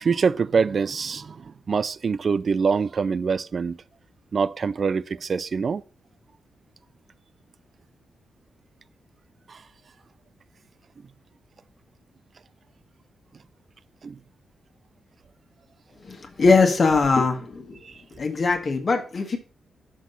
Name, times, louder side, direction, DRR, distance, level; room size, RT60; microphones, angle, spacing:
voice 1, 0.0-3.8 4.3-5.8 9.5-9.6 14.0-14.2 17.8-17.9, right 5 dB, 40° right, 0.3 m, -24 dB
voice 2, 16.1-17.8 18.1-19.4, left 4 dB, 40° left, 1.4 m, -21 dB
6.2 x 6.1 x 5.4 m
wide cardioid pair, 140°, 0 cm